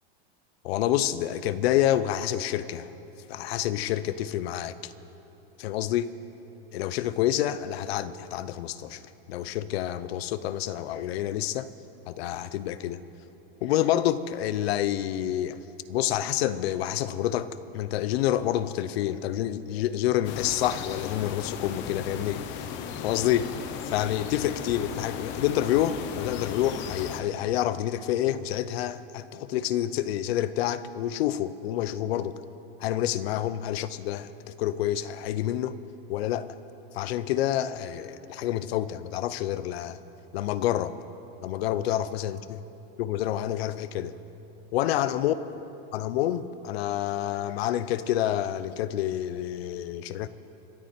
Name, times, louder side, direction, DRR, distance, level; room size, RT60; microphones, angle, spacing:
voice 1, 0.6-2.9 3.3-4.9 5.6-6.1 6.7-9.0 9.3-11.7 12.1-13.0 13.6-15.6 15.9-22.8 23.0-23.5 23.8-32.3 32.8-35.8 36.1-36.6 36.9-40.0 40.3-40.9 41.4-42.6 43.0-44.1 44.7-45.3 45.9-50.3, left 12 dB, 75° left, 0.7 m, -28 dB
sound 1, 20.2-27.2, left 7 dB, 35° left, 0.9 m, -36 dB
26.0 x 10.5 x 4.4 m
supercardioid pair, 150°, 31 cm